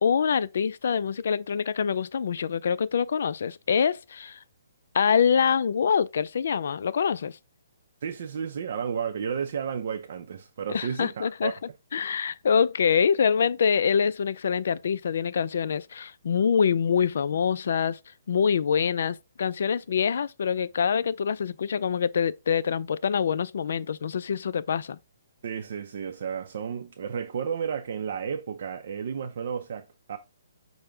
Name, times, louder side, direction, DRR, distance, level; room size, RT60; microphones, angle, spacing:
voice 1, 0.0-4.4 4.9-7.4 10.7-11.5 11.9-18.0 18.3-25.0, left 7 dB, 60° left, 0.3 m, -25 dB
voice 2, 8.0-11.5 25.4-30.2, right 7 dB, 55° right, 0.5 m, -32 dB
5.2 x 2.1 x 4.5 m
hypercardioid pair, 155°, 0 cm